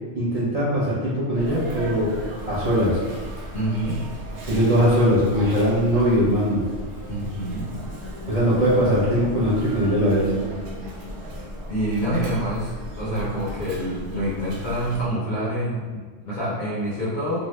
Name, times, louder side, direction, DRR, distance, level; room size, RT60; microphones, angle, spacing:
voice 1, 0.1-2.1 2.5-3.0 4.5-6.6 8.3-10.3, equal, 40° right, -10 dB, 0.6 m, -20 dB
Sneeze, 1.3-15.1, equal, 90° right, 1.0 m, -36 dB
voice 2, 3.5-4.0 7.1-7.7 11.7-17.5, right 1 dB, 50° left, -8 dB, 0.6 m, -27 dB
2.7 x 2.3 x 3.1 m, 1.4 s
omnidirectional pair, 1.3 m